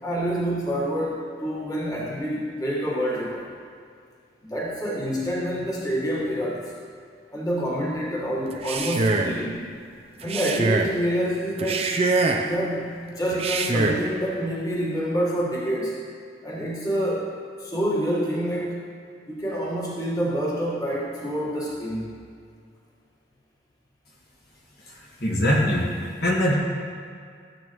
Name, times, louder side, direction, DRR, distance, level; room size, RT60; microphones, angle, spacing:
voice 1, 0.0-3.5 4.4-6.7 7.3-9.7 10.2-12.0 12.4-16.0 16.4-17.3 17.6-18.8 19.3-22.1, equal, 20° left, -6 dB, 1.5 m, -27 dB
Male speech man speaking, 8.5-9.4 10.2-11.0 11.6-12.6 13.3-14.1, right 3 dB, 35° right, 0.5 m, -24 dB
voice 2, 24.9-26.5, left 1 dB, 55° left, -4 dB, 1.6 m, -23 dB
14.0 x 8.5 x 3.1 m, 2.2 s
head